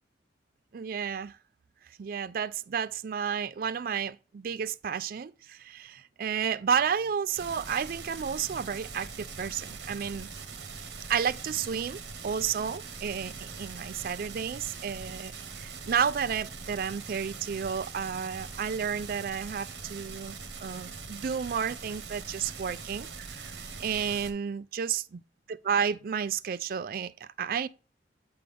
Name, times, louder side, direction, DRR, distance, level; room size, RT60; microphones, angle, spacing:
voice 1, 0.7-1.4 2.0-10.3 11.1-20.3 20.6-25.0 25.5-27.7, right 7 dB, 50° right, 0.3 m, -32 dB
sound 1, 7.3-24.3, right 5 dB, 70° right, 1.1 m, -42 dB
8.6 x 3.7 x 3.4 m
head